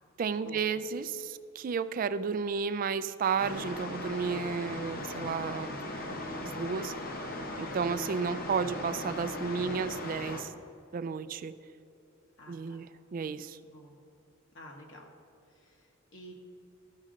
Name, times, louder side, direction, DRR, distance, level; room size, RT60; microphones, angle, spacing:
voice 1, 0.2-5.7 6.1-6.2 6.4-6.9 7.6-10.5 10.9-11.5 12.5-13.6, right 5 dB, 40° right, 14 dB, 0.3 m, -32 dB
sound 1, 3.4-10.4, left 1 dB, 45° left, 0.9 m, -38 dB
voice 2, 12.4-12.8 13.7-14.0 14.5-15.1 15.6-16.3, equal, 60° left, 0 dB, 1.3 m, -50 dB
14.0 x 6.3 x 3.8 m, 2.7 s
head